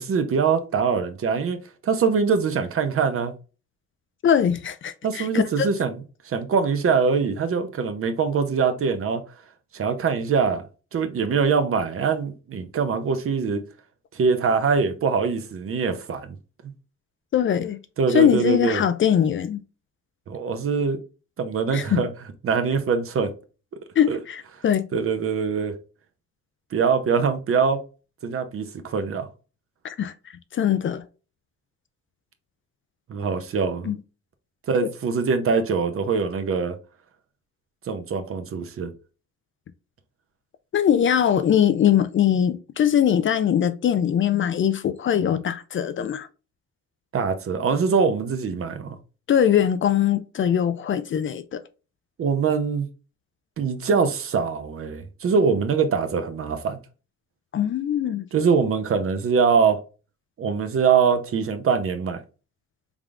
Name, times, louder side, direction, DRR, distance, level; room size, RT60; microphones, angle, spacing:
voice 1, 0.0-3.3 5.0-9.2 9.7-10.6 10.9-13.6 14.1-16.3 18.0-18.8 20.3-21.0 21.4-22.1 22.4-23.3 24.1-24.2 24.9-25.7 26.7-27.8 28.2-29.3 33.1-33.9 34.7-36.8 37.9-38.9 47.1-49.0 52.2-52.9 53.6-56.8 58.3-59.8 60.4-62.2, right 5 dB, 45° right, 0.7 m, -23 dB
voice 2, 4.2-5.7 17.3-17.8 18.1-19.6 21.7-22.0 24.0-24.9 29.8-30.1 30.5-31.0 33.8-33.9 40.7-46.3 49.3-51.6 57.5-58.3, left 9 dB, 40° left, 0.4 m, -21 dB
3.6 x 3.4 x 2.4 m
cardioid pair, 90°, 30 cm